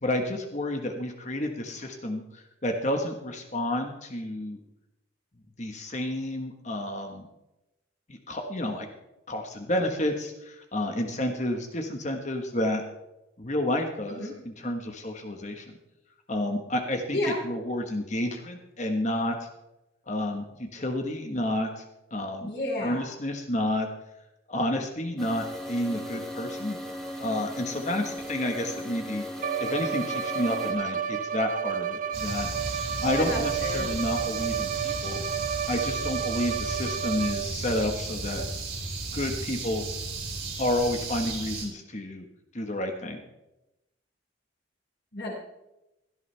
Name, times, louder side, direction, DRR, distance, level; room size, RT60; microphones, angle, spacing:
voice 1, 0.0-4.6 5.6-7.3 8.1-8.9 9.3-12.8 13.4-14.2 14.4-15.7 16.3-19.3 20.1-21.8 22.1-22.5 22.8-23.9 24.5-26.8 27.2-29.2 29.6-32.5 33.0-35.2 35.7-38.4 39.1-39.8 40.6-42.2 42.5-43.2, left 1 dB, 35° left, 4 dB, 1.4 m, -30 dB
voice 2, 22.4-23.1 33.2-33.9 45.1-45.3, left 1 dB, 60° left, -8 dB, 5.0 m, -31 dB
sound 1, 25.2-30.7, left 1 dB, ahead, 2.3 m, -37 dB
Bowed string instrument, 29.4-37.7, right 8 dB, 40° right, 0.5 m, -31 dB
sound 2, 32.1-41.7, right 3 dB, 90° right, 4.9 m, -34 dB
16.5 x 12.5 x 3.4 m, 0.91 s
head